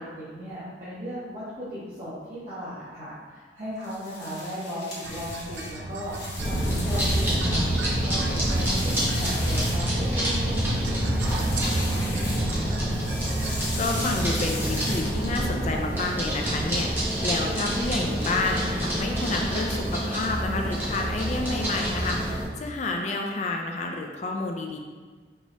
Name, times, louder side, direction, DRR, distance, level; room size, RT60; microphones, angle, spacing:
voice 1, 0.0-7.7 8.0-12.9, equal, 35° right, -14 dB, 1.3 m, -36 dB
sound 1, 3.8-7.6 8.0-10.2 11.0-12.6 12.9-15.4, left 2 dB, 65° left, 1.3 m, -38 dB
sound 2, 5.0-14.6, right 2 dB, 75° right, 0.4 m, -38 dB
sound 3, 6.4-22.4, right 1 dB, 10° right, 0.8 m, -27 dB
voice 2, 13.7-24.8, left 2 dB, 40° left, 2 dB, 0.4 m, -30 dB
4.7 x 3.0 x 2.7 m, 1.5 s
head